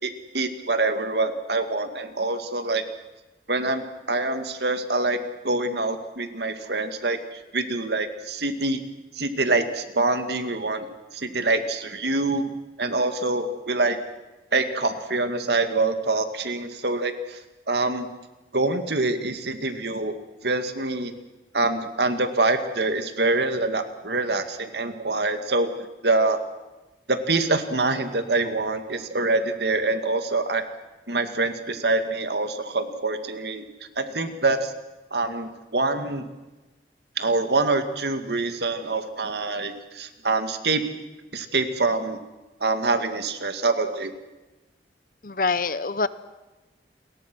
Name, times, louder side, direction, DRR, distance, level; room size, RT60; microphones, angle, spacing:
voice 1, 0.0-2.8 3.5-5.2 5.4-8.8 9.2-10.9 11.1-12.5 12.8-14.0 14.5-17.4 17.7-18.1 18.5-20.2 20.4-21.1 21.5-26.4 27.1-30.6 31.1-33.7 34.0-34.7 35.1-36.3 37.2-40.8 41.3-42.2 42.6-44.1, right 3 dB, 65° right, 8 dB, 2.1 m, -25 dB
voice 2, 45.2-46.1, left 4 dB, 50° left, 15 dB, 0.9 m, -25 dB
30.0 x 22.5 x 6.2 m, 1.1 s
head